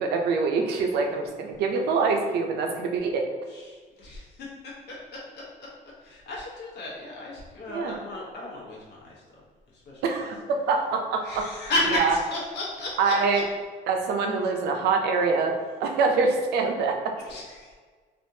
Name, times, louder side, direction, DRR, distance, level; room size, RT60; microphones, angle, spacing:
voice 1, 0.0-3.3 7.7-7.9 10.0-11.5 11.9-12.2 13.0-13.4 13.9-17.1, right 4 dB, 75° right, 3 dB, 0.5 m, -25 dB
voice 2, 3.5-5.4 6.0-9.2 9.8-10.0 11.2-13.4 17.2-17.7, left 1 dB, 75° left, -4 dB, 1.0 m, -33 dB
3.4 x 2.5 x 2.7 m, 1.5 s
cardioid pair, 110°, 17 cm